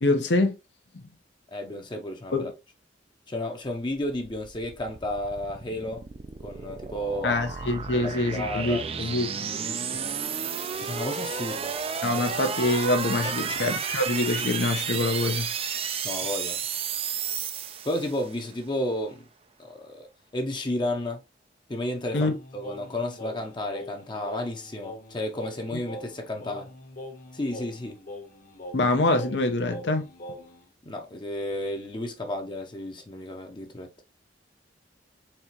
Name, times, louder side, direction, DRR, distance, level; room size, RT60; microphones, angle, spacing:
voice 1, 0.0-0.6 2.3-2.5 7.2-9.5 12.0-15.5 22.1-22.4 28.7-30.1, left 2 dB, 75° left, 0.8 m, -25 dB
voice 2, 1.5-2.5 3.3-6.0 6.4-7.4 7.9-9.0 9.5-10.1 10.8-11.7 12.1-12.2 13.4-13.6 16.0-16.6 17.8-19.2 19.6-20.1 20.3-21.2 21.7-26.7 27.3-28.0 30.8-33.9, left 1 dB, 25° left, 0.7 m, -32 dB
sound 1, 4.0-18.4, right 7 dB, 35° right, 0.4 m, -32 dB
Singing, 22.1-30.7, left 1 dB, 50° left, 1.1 m, -43 dB
4.3 x 3.5 x 2.9 m
head